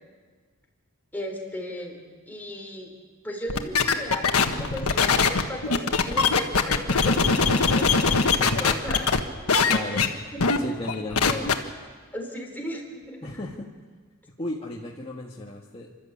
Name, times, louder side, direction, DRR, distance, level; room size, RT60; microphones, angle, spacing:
voice 1, 1.1-2.0 2.3-2.9 3.2-9.3 9.9-10.1 10.3-10.4 12.1-13.3, left 1 dB, 10° left, 0 dB, 4.1 m, -36 dB
sound 1, 3.5-9.2 9.5-10.1 10.4-10.6 10.9-11.5, left 5 dB, 90° left, 1.5 m, -21 dB
voice 2, 9.7-10.1 10.6-11.5 13.2-13.7 14.4-15.9, left 1 dB, 25° left, -3 dB, 1.7 m, -34 dB
29.5 x 13.0 x 8.6 m, 1.5 s
head